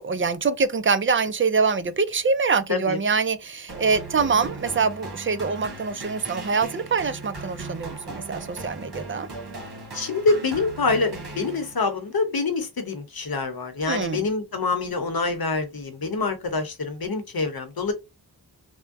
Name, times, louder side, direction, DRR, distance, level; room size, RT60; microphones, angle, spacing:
voice 1, 0.0-9.3 13.9-14.3, right 5 dB, 30° right, 0.4 m, -24 dB
voice 2, 2.7-3.0 9.9-17.9, left 3 dB, 60° left, 0.9 m, -26 dB
sound 1, 3.7-12.0, right 2 dB, 70° right, 1.3 m, -38 dB
3.4 x 2.2 x 2.6 m
wide cardioid pair, 85°, 41 cm